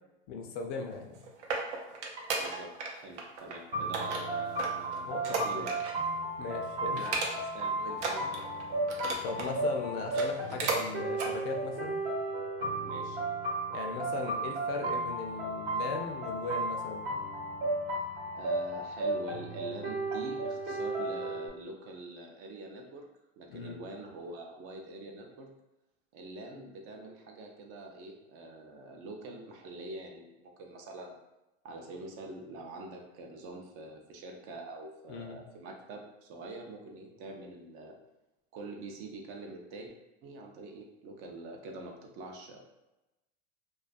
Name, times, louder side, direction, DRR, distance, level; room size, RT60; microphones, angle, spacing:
voice 1, 0.3-1.3 5.1-5.7 6.4-7.0 9.2-12.0 13.7-17.1 23.5-23.8 35.1-35.4, left 4 dB, 50° left, 3 dB, 0.4 m, -38 dB
sound 1, 0.9-2.9 3.2-3.6 3.9-6.1 6.4-6.6 7.0-7.6 7.9-9.5 10.0-10.8 11.1-11.3 11.8-11.9, right 3 dB, 85° right, 0.6 m, -35 dB
voice 2, 2.3-5.8 6.9-8.3 12.8-13.2 18.3-23.0 23.4-25.5 26.1-31.2 31.6-38.0 38.5-39.9 40.2-42.7, right 2 dB, 40° right, 2 dB, 0.5 m, -45 dB
sound 2, 3.7-21.5, right 2 dB, 60° right, 0.9 m, -34 dB
2.3 x 2.2 x 2.5 m, 0.96 s
supercardioid pair, 120°, 34 cm